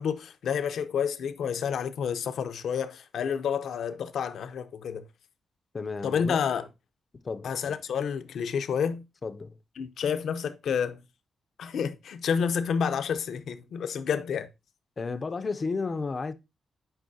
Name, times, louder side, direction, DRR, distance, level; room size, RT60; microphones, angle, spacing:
voice 1, 0.0-5.0 6.0-6.6 7.4-9.0 9.8-11.0 11.6-14.5, left 7 dB, 70° left, 0.7 m, -29 dB
voice 2, 5.7-6.4 7.2-7.8 9.2-9.6 15.0-16.3, left 4 dB, 30° left, 0.5 m, -33 dB
9.0 x 5.4 x 2.7 m
wide cardioid pair, 155°, 0 cm